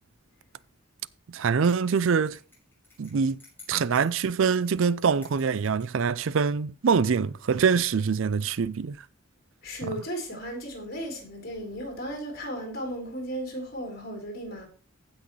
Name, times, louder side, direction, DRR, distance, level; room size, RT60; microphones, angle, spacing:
voice 1, 1.3-2.4 3.0-3.4 3.7-9.0 9.8-9.9, right 6 dB, 70° right, 0.4 m, -24 dB
sound 1, 1.6-6.0, left 3 dB, 10° left, 5.8 m, -54 dB
voice 2, 9.6-14.7, equal, 50° left, 4.0 m, -35 dB
15.5 x 6.3 x 3.2 m
head